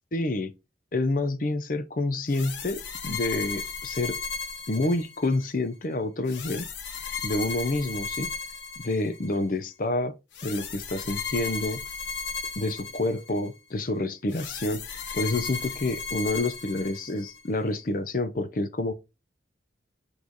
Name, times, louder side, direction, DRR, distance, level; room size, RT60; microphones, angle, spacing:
voice 1, 0.1-0.5 0.9-4.2 4.7-6.7 7.2-8.3 8.8-11.8 12.6-18.9, left 2 dB, 45° left, 0.6 m, -28 dB
sound 1, 2.3-5.4 6.3-9.4 10.3-13.5 14.3-17.4, left 5 dB, 80° left, 1.0 m, -35 dB
8.3 x 3.3 x 3.9 m
head